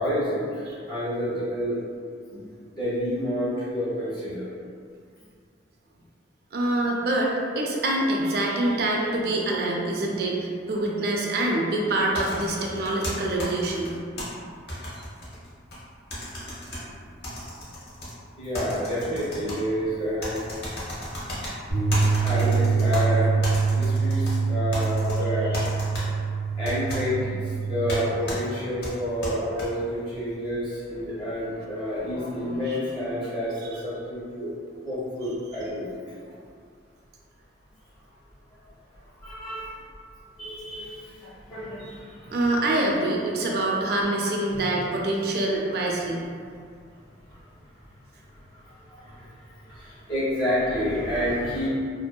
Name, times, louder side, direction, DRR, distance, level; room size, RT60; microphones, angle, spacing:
voice 1, 0.0-1.8 2.3-2.4 2.8-4.5 18.4-20.4 22.2-25.6 25.9-26.0 26.6-34.5 34.8-35.9 38.5-38.6 39.2-39.9 40.4-42.4 44.5-44.7 46.9-47.0 47.3-47.4 48.3-48.4 48.7-51.7, equal, 25° left, -10 dB, 0.7 m, -29 dB
voice 2, 6.5-13.9 25.5-25.6 32.7-32.8 42.3-46.2, right 1 dB, 55° right, -2 dB, 0.4 m, -25 dB
sound 1, 12.1-14.2 14.7-15.8 16.1-16.8 17.2-18.1 18.5-19.6 20.2-21.5 21.9-23.0 23.4-24.4 24.7-25.2 25.5-26.0 26.6-27.0 27.9-28.0 28.3-28.4 28.8-29.7, equal, 60° left, 0.7 m, -34 dB
Bass guitar, 21.7-28.0, right 5 dB, 75° left, 1.2 m, -24 dB
2.6 x 2.2 x 2.2 m, 2.1 s
head